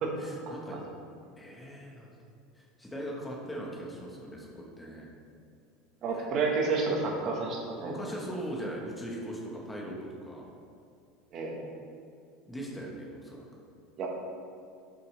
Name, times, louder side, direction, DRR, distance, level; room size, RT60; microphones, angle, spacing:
voice 1, 0.2-0.8 1.4-2.1 2.5-5.1 6.1-6.3 7.8-10.5 12.5-13.4, right 1 dB, 5° left, -2 dB, 1.2 m, -40 dB
voice 2, 6.0-7.9 11.3-11.6 14.0-14.1, right 4 dB, 30° right, 0 dB, 1.3 m, -30 dB
11.0 x 6.5 x 3.2 m, 2.3 s
cardioid pair, 175°, 0 cm